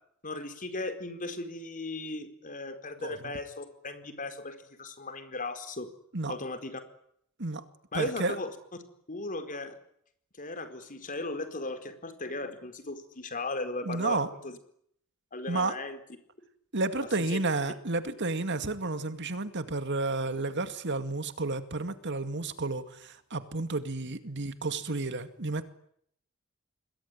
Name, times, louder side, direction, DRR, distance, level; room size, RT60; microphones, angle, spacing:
voice 1, 0.2-5.9 6.3-6.8 7.9-8.5 9.1-9.8 10.4-14.6 15.3-16.0 17.2-17.4, left 2 dB, 40° left, 7 dB, 4.6 m, -37 dB
voice 2, 7.9-8.4 13.8-14.3 15.5-15.8 16.7-25.6, right 3 dB, 55° right, 10 dB, 2.2 m, -31 dB
27.0 x 21.5 x 9.9 m, 0.69 s
head